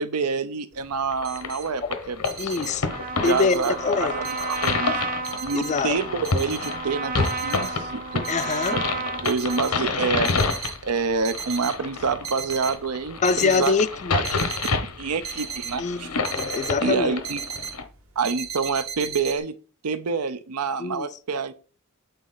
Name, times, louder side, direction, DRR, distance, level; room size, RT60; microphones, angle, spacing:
voice 1, 0.0-2.2 3.2-5.0 5.4-8.2 8.7-10.3 10.8-13.8 14.1-14.4 15.0-16.1 16.8-17.4 18.2-19.6 19.8-21.5, right 5 dB, 90° right, 0.6 m, -27 dB
sound 1, 0.7-0.8 1.0-1.7 2.0-3.9 4.2-5.0 5.2-6.9 7.2-7.8 8.2-8.8 9.2-10.8 11.2-11.8 12.1-12.8 13.1-13.7 14.2-16.7 17.0-17.8 18.2-19.4, right 7 dB, 65° right, 1.3 m, -35 dB
sound 2, 1.1-17.8, left 4 dB, 90° left, 1.0 m, -29 dB
voice 2, 2.4-2.9 3.2-4.1 5.5-6.0 8.3-8.8 13.2-14.1 15.8-17.1 20.8-21.1, left 4 dB, 30° left, 0.4 m, -24 dB
Trumpet, 2.8-10.0, right 4 dB, 40° right, 0.6 m, -33 dB
8.2 x 4.1 x 3.9 m
head